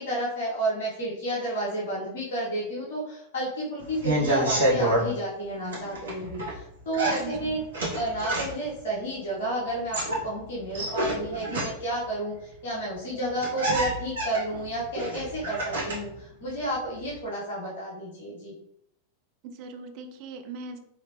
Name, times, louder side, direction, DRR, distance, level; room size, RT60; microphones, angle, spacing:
voice 1, 0.0-7.6 7.9-18.5, right 1 dB, 55° left, -6 dB, 1.3 m, -31 dB
sound 1, 3.8-5.1 5.7-6.6 6.9-8.8 9.7-12.0 12.9-13.0 13.2-16.1 16.5-17.2, right 1 dB, 70° right, 1.4 m, -28 dB
voice 2, 7.2-7.6 19.4-20.8, right 4 dB, 45° right, 6 dB, 0.5 m, -40 dB
4.8 x 3.1 x 3.1 m, 0.76 s
figure-of-eight pair, 90°, 0 cm